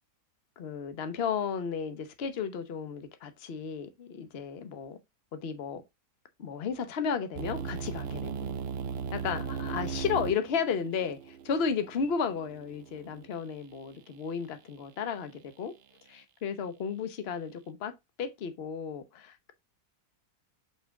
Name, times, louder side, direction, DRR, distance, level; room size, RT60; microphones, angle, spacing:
voice 1, 0.6-5.0 5.3-5.8 6.4-8.5 9.1-15.7 16.1-17.9 18.2-19.5, left 6 dB, 45° left, 1.0 m, -33 dB
sound 1, 7.3-13.3, right 6 dB, 60° right, 0.6 m, -37 dB
5.6 x 4.5 x 3.7 m
omnidirectional pair, 1.7 m